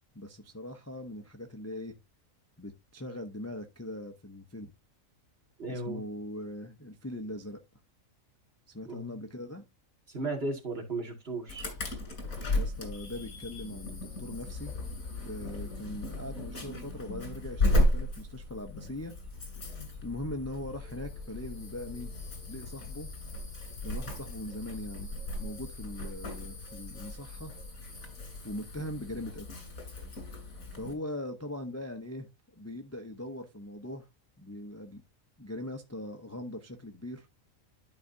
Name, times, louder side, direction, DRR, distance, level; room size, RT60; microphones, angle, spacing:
voice 1, 0.1-2.0 2.6-4.7 5.7-7.6 8.7-9.6 12.6-14.7 15.2-19.1 20.0-22.1 22.5-23.1 23.8-25.1 25.4-27.5 28.4-29.5 30.7-34.1 34.4-35.0 35.4-37.3, left 1 dB, 15° left, 0.7 m, -41 dB
voice 2, 5.6-6.0 8.8-9.2 10.1-11.6, right 2 dB, 45° right, 2.4 m, -35 dB
Insect / Alarm, 11.5-30.9, left 1 dB, 85° left, 3.0 m, -35 dB
12.0 x 4.9 x 2.7 m
omnidirectional pair, 1.4 m